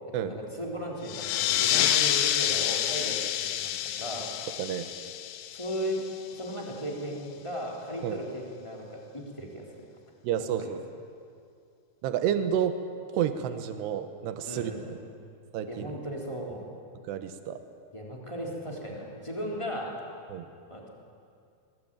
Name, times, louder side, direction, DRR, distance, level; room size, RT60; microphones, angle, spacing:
voice 1, 0.2-3.7 4.0-4.3 5.5-6.0 6.3-9.7 10.6-10.7 14.5-15.0 15.7-16.6 17.9-20.0 20.7-20.9, equal, 5° left, -2 dB, 2.8 m, -36 dB
sound 1, 1.1-6.3, left 12 dB, 85° left, 3.7 m, -28 dB
voice 2, 10.2-10.8 12.0-12.8 13.1-14.7 15.5-15.9 17.1-17.6 20.3-20.5, right 9 dB, 70° right, 8 dB, 2.9 m, -30 dB
23.0 x 19.5 x 9.1 m, 2.4 s
omnidirectional pair, 5.7 m